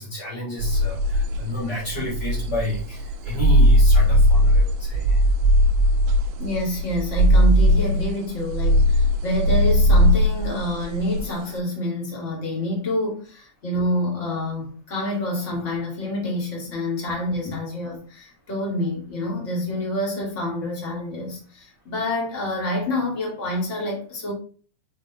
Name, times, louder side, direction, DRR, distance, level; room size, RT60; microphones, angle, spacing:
voice 1, 0.0-5.2 17.4-17.5, left 2 dB, 85° left, -6 dB, 0.9 m, -30 dB
sound 1, 0.6-11.5, equal, 85° right, 2.3 m, -18 dB
voice 2, 6.4-24.3, left 1 dB, 35° left, -2 dB, 1.1 m, -27 dB
6.0 x 5.2 x 3.0 m, 0.41 s
omnidirectional pair, 4.8 m